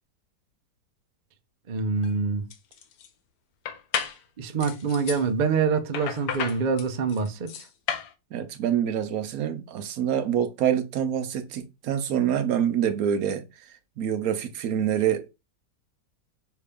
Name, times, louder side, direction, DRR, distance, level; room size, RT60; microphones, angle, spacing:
voice 1, 1.7-2.5 4.4-7.7, right 5 dB, 85° right, 0.4 m, -25 dB
sound 1, 2.0-2.1 2.5-3.1 3.7-4.2 4.6-5.2 5.9-8.1, left 8 dB, 65° left, 1.1 m, -32 dB
voice 2, 8.3-13.4 14.0-15.3, right 9 dB, 70° right, 0.9 m, -26 dB
5.7 x 2.7 x 3.4 m
omnidirectional pair, 1.9 m